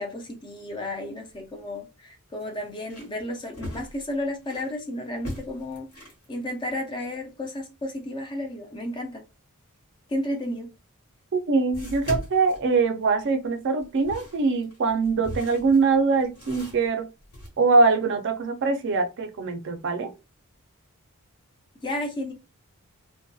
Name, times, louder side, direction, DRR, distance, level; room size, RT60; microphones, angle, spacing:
voice 1, 0.0-9.2 10.1-10.7 21.8-22.3, left 1 dB, 20° left, 0.4 m, -32 dB
sound 1, 1.2-1.3 1.7-1.8 2.4-4.7 5.1-6.3 10.5-10.6 11.7-13.3 13.8-17.5, left 1 dB, 85° left, 1.2 m, -39 dB
voice 2, 11.3-17.1 17.6-20.1, right 4 dB, 55° right, 0.4 m, -23 dB
2.6 x 2.2 x 2.3 m
head